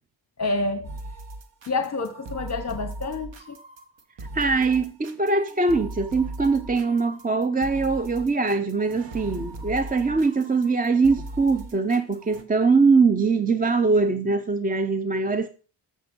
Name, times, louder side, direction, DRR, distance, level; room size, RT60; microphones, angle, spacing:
voice 1, 0.4-0.9 1.7-3.6, left 3 dB, 40° left, 0.8 m, -28 dB
sound 1, 0.8-12.4, right 2 dB, 90° right, 1.4 m, -39 dB
voice 2, 4.3-15.5, right 4 dB, 20° right, 0.5 m, -22 dB
13.5 x 6.3 x 5.3 m
wide cardioid pair, 165°, 42 cm